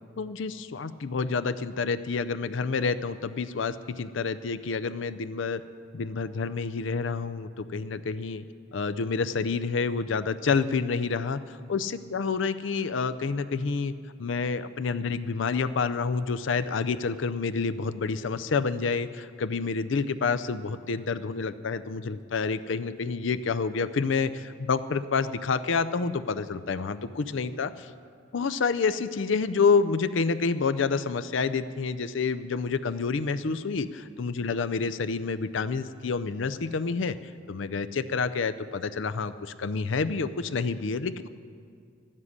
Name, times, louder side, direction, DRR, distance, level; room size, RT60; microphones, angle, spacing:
voice 1, 0.2-5.6 5.9-8.4 8.7-11.4 11.7-13.9 14.2-27.9 28.3-37.2 37.5-41.3, left 4 dB, 70° left, 13 dB, 0.5 m, -28 dB
13.0 x 7.5 x 9.7 m, 2.3 s
head